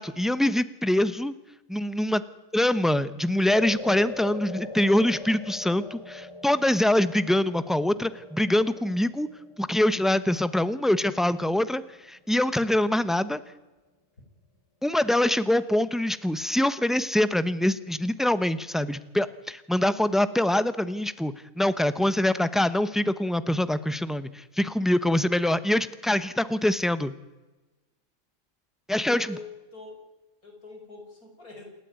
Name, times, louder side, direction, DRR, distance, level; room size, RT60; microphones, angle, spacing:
voice 1, 0.0-1.3 1.7-2.2 2.5-9.3 9.6-11.8 12.1-13.4 14.8-27.1 28.9-29.4, left 1 dB, ahead, 14 dB, 0.7 m, -24 dB
sound 1, 3.5-12.0, left 2 dB, 20° left, 1.3 m, -42 dB
voice 2, 29.0-30.1 30.4-31.6, left 4 dB, 85° left, 2 dB, 6.4 m, -44 dB
28.0 x 13.0 x 9.4 m, 1.1 s
omnidirectional pair, 1.5 m